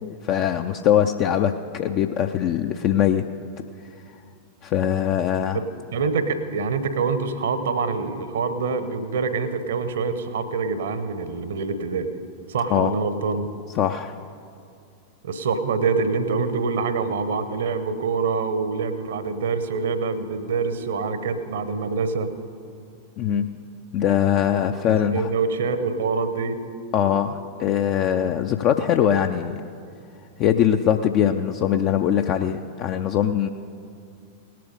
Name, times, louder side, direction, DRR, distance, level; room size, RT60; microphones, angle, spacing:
voice 1, 0.0-3.2 4.6-5.6 12.7-12.9 13.7-14.2 23.2-23.5 23.9-25.3 26.9-29.6 30.4-33.5, left 9 dB, 40° left, 6 dB, 0.4 m, -22 dB
voice 2, 5.5-12.1 12.5-13.5 15.2-22.3 24.9-26.6, right 4 dB, 60° right, 11 dB, 0.9 m, -25 dB
18.0 x 7.7 x 5.3 m, 2.5 s
figure-of-eight pair, 90°, 0 cm